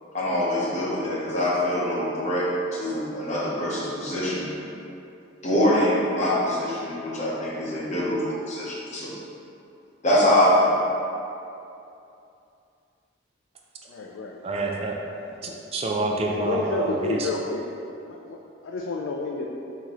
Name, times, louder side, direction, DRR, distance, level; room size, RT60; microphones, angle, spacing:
voice 1, 0.1-4.5 5.4-9.1 10.0-10.8, left 1 dB, 35° left, -7 dB, 0.9 m, -24 dB
voice 2, 13.9-14.5 16.3-17.7 18.1-19.5, left 3 dB, 75° left, -1 dB, 0.3 m, -30 dB
voice 3, 14.4-15.0 15.4-17.3, right 2 dB, 30° right, 0 dB, 0.4 m, -27 dB
5.9 x 2.8 x 3.0 m, 2.7 s
head